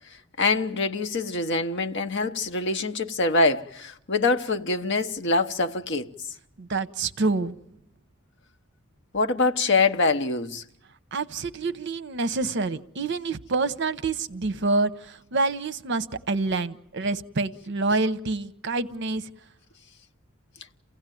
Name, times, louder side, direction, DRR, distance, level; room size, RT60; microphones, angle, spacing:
voice 1, 0.4-6.1 9.1-10.6, left 3 dB, 55° left, 0.9 m, -24 dB
voice 2, 6.6-7.6 11.1-19.3, right 3 dB, 55° right, 0.8 m, -27 dB
29.0 x 16.0 x 9.2 m
head